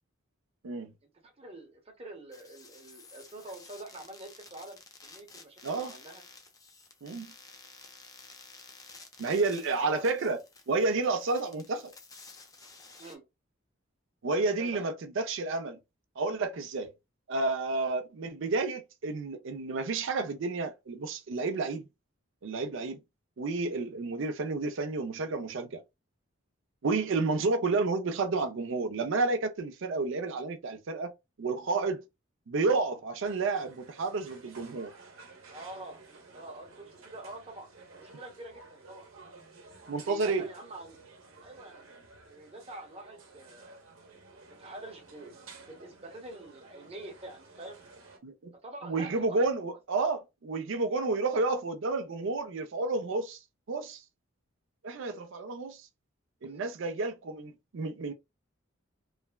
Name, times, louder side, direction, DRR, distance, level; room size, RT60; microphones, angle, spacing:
voice 1, 1.2-4.8 5.0-6.2 9.7-10.1 13.0-13.2 14.6-14.9 35.5-36.0 36.3-39.1 39.9-41.0 41.4-41.8 42.3-43.8 44.5-47.8 48.6-49.4 54.9-55.2 56.4-56.7, right 1 dB, 30° right, 0.9 m, -46 dB
sound 1, 2.3-13.1, left 3 dB, 20° left, 0.5 m, -53 dB
voice 2, 9.2-10.4 10.7-11.9 14.2-15.8 16.2-16.9 17.3-21.9 22.4-23.0 23.4-25.8 26.8-31.1 31.4-32.1 32.5-34.9 39.9-40.5 48.2-48.5 48.8-53.4 53.7-54.0 54.8-55.9 56.4-58.1, right 3 dB, 65° right, 0.5 m, -30 dB
sound 2, 33.2-48.2, right 3 dB, 90° right, 0.8 m, -53 dB
3.2 x 2.1 x 2.2 m
head